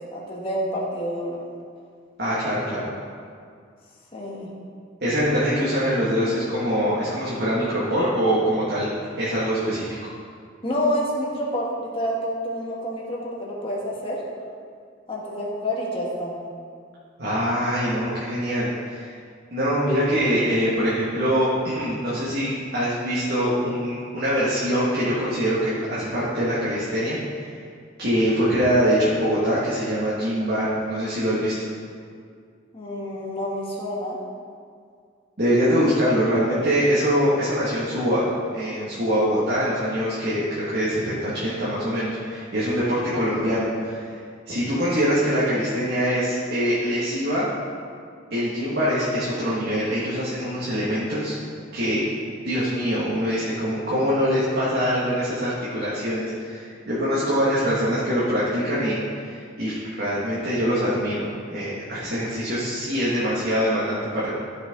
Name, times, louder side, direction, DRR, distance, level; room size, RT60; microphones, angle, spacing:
voice 1, 0.1-1.4 4.1-4.5 10.6-14.2 15.1-16.3 32.7-34.2 56.9-57.3, equal, 30° left, -4 dB, 1.9 m, -28 dB
voice 2, 2.2-2.9 5.0-8.9 9.2-10.0 17.2-19.1 19.5-27.2 28.0-31.5 35.4-44.1 44.5-47.5 48.3-51.3 51.7-52.0 52.4-64.3, equal, 55° right, -9 dB, 2.1 m, -23 dB
14.0 x 7.1 x 3.9 m, 2.2 s
head